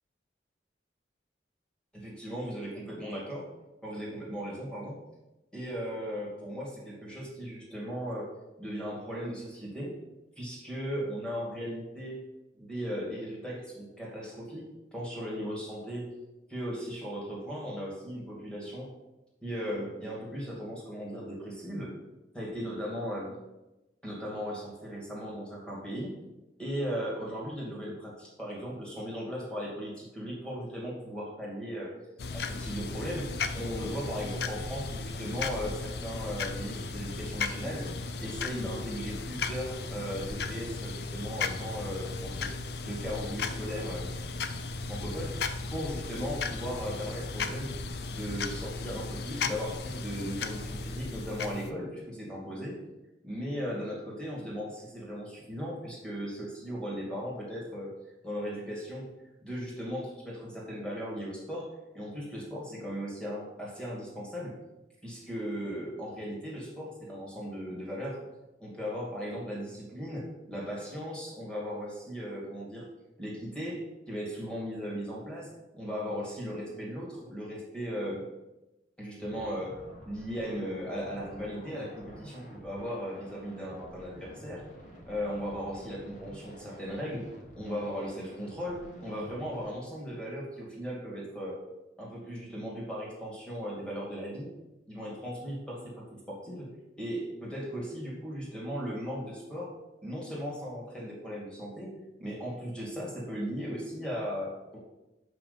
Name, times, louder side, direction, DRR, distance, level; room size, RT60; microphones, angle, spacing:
voice 1, 1.9-3.5 3.8-5.0 5.5-8.3 8.6-9.9 10.4-12.2 12.6-16.1 16.5-18.9 19.4-21.9 22.3-23.4 24.0-26.2 26.6-32.0 32.3-37.9 38.2-42.5 42.8-44.1 44.9-47.8 48.1-52.8 53.2-57.9 58.2-59.1 59.4-64.6 65.0-68.2 68.6-72.9 73.2-78.3 79.0-84.7 85.1-87.3 87.5-91.6 92.0-94.5 94.9-96.7 97.0-99.7 100.0-101.9 102.2-104.8, equal, 5° left, -5 dB, 2.4 m, -37 dB
sound 1, 32.2-51.7, left 4 dB, 60° left, 0.5 m, -36 dB
sound 2, 79.2-89.8, equal, 45° left, 1.7 m, -49 dB
6.1 x 5.5 x 7.0 m, 0.99 s
head